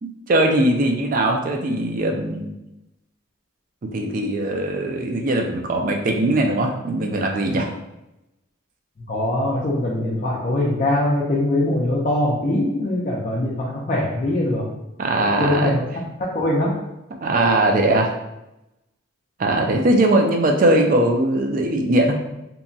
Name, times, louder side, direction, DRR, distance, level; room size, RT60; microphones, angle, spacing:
voice 1, 0.0-2.5 3.8-7.7 15.0-15.7 17.2-18.1 19.4-22.2, right 1 dB, 40° right, 2 dB, 0.3 m, -20 dB
voice 2, 9.1-14.7 15.2-16.0 16.3-16.8, left 1 dB, 40° left, -4 dB, 0.4 m, -22 dB
2.8 x 2.2 x 2.6 m, 0.92 s
head